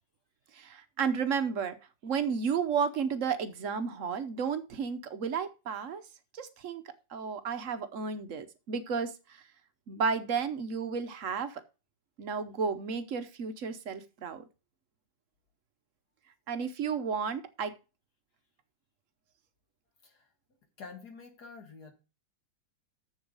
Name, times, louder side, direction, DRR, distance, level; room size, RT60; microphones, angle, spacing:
voice 1, 0.5-1.8 2.0-6.0 6.3-6.8 7.1-9.4 9.9-11.6 12.2-14.4 16.5-17.7, right 6 dB, 55° right, 10 dB, 1.0 m, -32 dB
voice 2, 20.8-21.9, left 5 dB, 60° left, 4 dB, 2.0 m, -48 dB
7.1 x 7.0 x 5.3 m, 0.30 s
omnidirectional pair, 2.0 m